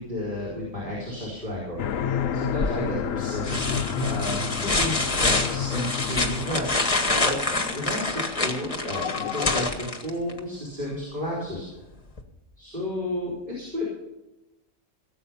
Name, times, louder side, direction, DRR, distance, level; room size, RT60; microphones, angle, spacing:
voice 1, 0.0-1.8 2.3-7.4 7.7-11.7 12.6-13.8, left 1 dB, 35° right, -6 dB, 4.4 m, -32 dB
sound 1, 1.8-9.7, left 8 dB, 70° left, 1.1 m, -31 dB
sound 2, 2.6-3.0 3.4-10.4 12.2-12.3, left 2 dB, 25° left, 1.4 m, -27 dB
18.0 x 8.4 x 5.6 m, 0.93 s
omnidirectional pair, 1.5 m